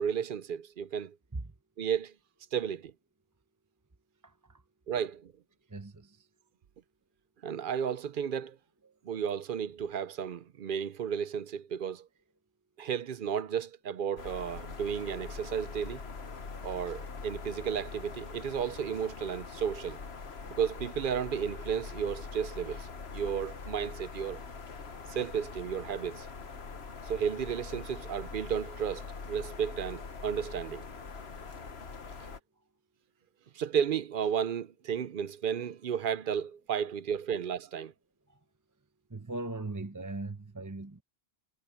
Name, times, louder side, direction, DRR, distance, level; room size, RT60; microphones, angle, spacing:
voice 1, 0.0-1.2 1.8-2.1 2.5-2.9 4.9-5.3 7.4-8.6 9.0-12.1 12.8-16.0 16.6-20.0 20.5-24.4 25.1-26.3 27.0-30.9 33.5-37.9, right 8 dB, 60° right, 0.7 m, -33 dB
voice 2, 4.2-4.6 5.7-6.3 38.3-38.4 39.1-41.0, right 2 dB, 20° right, 0.9 m, -39 dB
sound 1, 14.2-32.4, left 4 dB, 85° left, 1.6 m, -43 dB
omnidirectional pair, 1.0 m